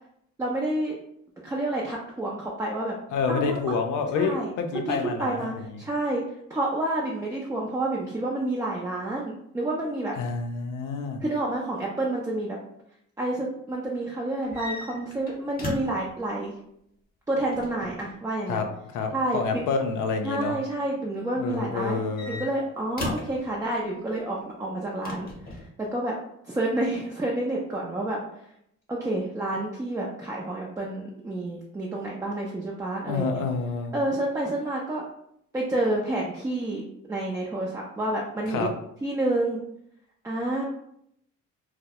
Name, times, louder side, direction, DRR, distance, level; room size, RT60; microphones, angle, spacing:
voice 1, 0.4-0.9 1.4-2.9 3.3-3.6 4.1-4.5 4.9-6.2 6.5-10.1 11.2-12.6 13.2-16.5 17.3-18.6 19.1-19.6 20.2-22.0 22.3-25.3 25.5-26.2 26.4-28.2 28.9-33.4 33.9-35.0 35.5-36.8 37.1-38.7 39.0-39.6 40.2-40.7, right 1 dB, 10° right, -3 dB, 0.3 m, -29 dB
voice 2, 3.1-5.8 10.2-11.2 18.5-20.6 21.4-22.4 33.0-33.9 38.5-38.7, left 5 dB, 80° left, 5 dB, 0.4 m, -28 dB
sound 1, 14.4-16.1 17.4-18.1 19.6-20.0 21.8-23.4 25.0-25.7, left 2 dB, 30° left, 0.7 m, -36 dB
2.2 x 2.0 x 2.7 m, 0.74 s
cardioid pair, 90°, 30 cm